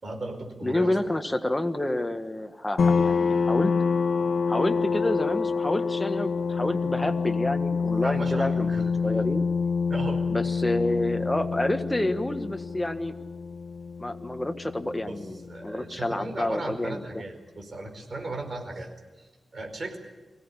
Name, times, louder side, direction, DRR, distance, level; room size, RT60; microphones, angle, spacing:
voice 1, 0.0-1.1 8.0-8.8 9.9-10.2 15.1-15.2 15.5-18.9 19.2-20.0, right 2 dB, 45° right, 4 dB, 4.8 m, -36 dB
voice 2, 0.6-3.7 4.5-9.5 10.3-13.1 14.0-17.2, left 1 dB, 15° left, 7 dB, 1.6 m, -29 dB
sound 1, 2.8-16.1, left 5 dB, 70° left, 1.3 m, -27 dB
23.5 x 17.0 x 10.0 m, 1.1 s
wide cardioid pair, 105°, 0 cm